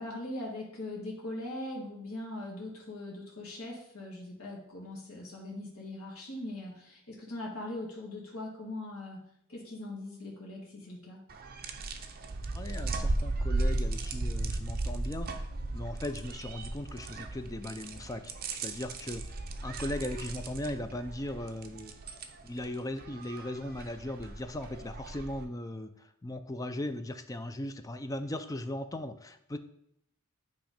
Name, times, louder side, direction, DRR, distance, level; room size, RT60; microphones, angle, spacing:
voice 1, 0.0-9.2 9.5-11.2, left 1 dB, 80° left, -3 dB, 1.7 m, -41 dB
sound 1, 11.3-25.4, right 2 dB, 45° right, 0.6 m, -36 dB
voice 2, 12.5-15.5 15.7-18.3 18.6-22.0 22.4-29.6, left 1 dB, 15° left, 9 dB, 0.4 m, -38 dB
8.8 x 3.1 x 5.0 m, 0.74 s
head